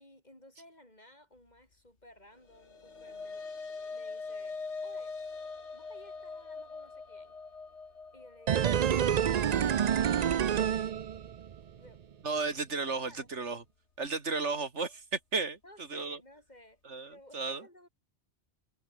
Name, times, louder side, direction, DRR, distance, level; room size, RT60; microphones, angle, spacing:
voice 1, 0.0-3.4 3.9-5.2 5.7-7.4 8.1-8.9 9.4-10.5 11.7-12.0 12.9-13.3 15.6-16.8 17.1-17.9, left 1 dB, 40° left, 6.9 m, -57 dB
sound 1, 2.4-11.0, left 4 dB, 80° left, 2.6 m, -43 dB
sound 2, 8.5-11.6 11.9-12.0, right 9 dB, 50° right, 0.5 m, -28 dB
voice 2, 12.2-13.6 14.0-16.2 16.9-17.7, right 4 dB, 85° right, 2.7 m, -34 dB
omnidirectional pair, 1.2 m